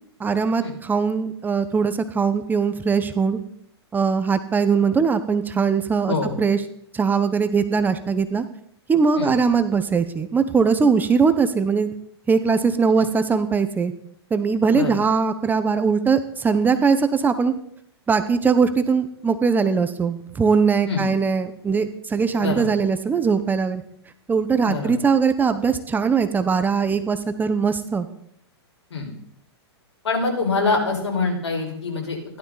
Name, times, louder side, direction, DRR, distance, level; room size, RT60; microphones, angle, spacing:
voice 1, 0.2-3.4 3.9-6.6 6.9-8.5 8.9-11.9 12.3-13.9 14.3-17.5 18.1-23.8 24.3-28.1, right 5 dB, 15° right, 10 dB, 1.0 m, -21 dB
voice 2, 22.4-22.7 24.6-24.9 28.9-29.1 30.0-32.4, left 3 dB, 85° left, -1 dB, 5.4 m, -25 dB
16.0 x 12.0 x 4.1 m, 0.70 s
hypercardioid pair, 125°, 14 cm